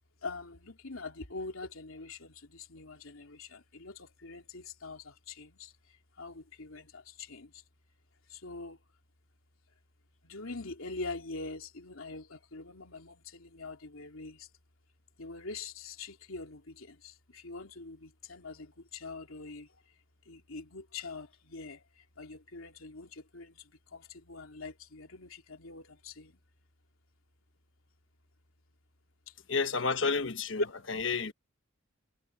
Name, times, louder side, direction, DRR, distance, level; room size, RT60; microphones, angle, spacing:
voice 1, 0.2-5.7 6.2-7.5 8.3-8.8 10.2-14.5 15.2-19.7 20.3-21.8 22.2-26.3 30.6-30.7, left 3 dB, 85° left, 2.9 m, -43 dB
voice 2, 29.5-30.6 30.9-31.3, left 4 dB, 65° left, 1.2 m, -30 dB
head